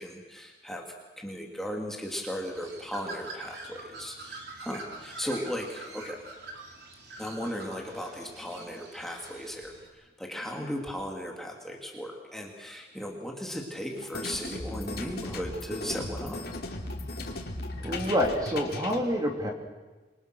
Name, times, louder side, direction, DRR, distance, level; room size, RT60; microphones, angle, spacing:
voice 1, 0.0-6.2 7.2-16.4, equal, ahead, 0 dB, 2.6 m, -36 dB
Bird, 2.4-9.9, right 2 dB, 70° right, 4.0 m, -45 dB
sound 1, 14.0-19.0, left 2 dB, 60° left, 3.1 m, -37 dB
voice 2, 17.8-19.5, equal, 20° right, 2 dB, 3.0 m, -27 dB
27.0 x 23.5 x 6.3 m, 1.2 s
head